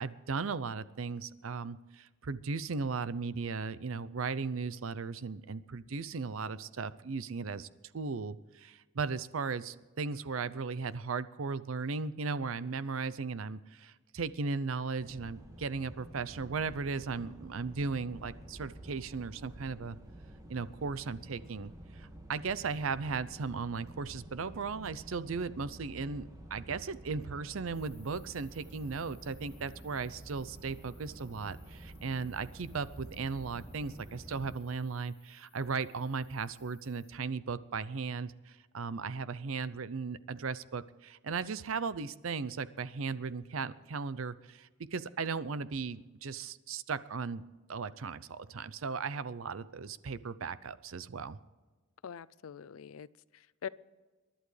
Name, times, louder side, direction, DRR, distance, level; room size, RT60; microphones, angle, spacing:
voice 1, 0.0-7.7 7.9-20.0 20.5-47.4 47.7-51.4, right 4 dB, 75° right, 16 dB, 0.6 m, -37 dB
sound 1, 15.0-34.5, right 1 dB, 15° right, 1.7 m, -50 dB
sound 2, 27.7-37.1, left 5 dB, 15° left, 2.5 m, -65 dB
voice 2, 52.0-53.7, left 7 dB, 80° left, 20 dB, 0.4 m, -44 dB
27.5 x 11.5 x 3.3 m, 1.3 s
head